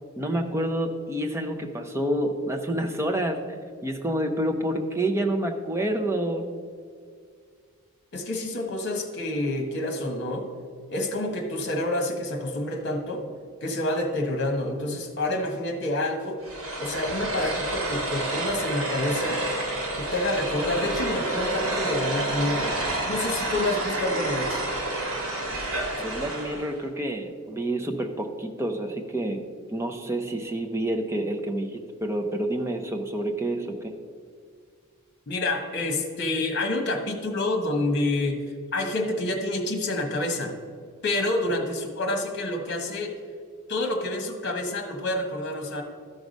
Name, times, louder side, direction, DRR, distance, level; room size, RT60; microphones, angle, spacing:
voice 1, 0.2-3.4 3.8-6.5 26.0-29.4 29.7-33.9, right 1 dB, 10° right, 3 dB, 0.6 m, -28 dB
voice 2, 8.1-10.5 10.9-13.2 13.6-16.4 16.8-19.4 20.0-22.8 23.1-24.6 35.3-38.4 38.7-40.6 41.0-43.2 43.7-45.8, left 2 dB, 50° left, 4 dB, 1.3 m, -28 dB
sound 1, 16.4-26.7, right 2 dB, 80° right, 2.1 m, -29 dB
13.0 x 4.8 x 5.2 m, 2.1 s
head